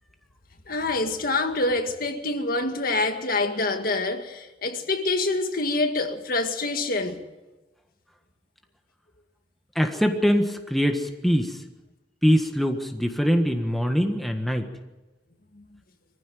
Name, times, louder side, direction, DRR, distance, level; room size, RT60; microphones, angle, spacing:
voice 1, 0.7-7.2, left 2 dB, 50° left, 1.9 m, -26 dB
voice 2, 9.7-11.6 12.2-14.7, equal, ahead, 1.5 m, -23 dB
23.5 x 15.0 x 9.3 m
head